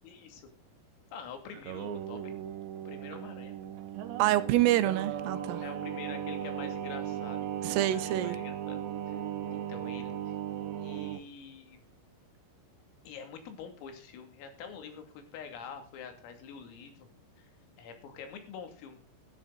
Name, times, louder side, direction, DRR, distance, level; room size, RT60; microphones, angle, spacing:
voice 1, 0.0-0.5 1.1-2.4 2.9-3.5 5.6-8.8 9.1-9.2 9.5-10.4 10.7-11.8 13.1-17.1 17.4-17.5 17.8-19.0, left 6 dB, 80° left, 5.2 m, -46 dB
Singing, 1.5-11.2, right 10 dB, 70° right, 3.3 m, -37 dB
voice 2, 4.2-5.6 7.6-8.4, right 14 dB, 85° right, 3.6 m, -26 dB
17.0 x 13.0 x 4.0 m
omnidirectional pair, 5.9 m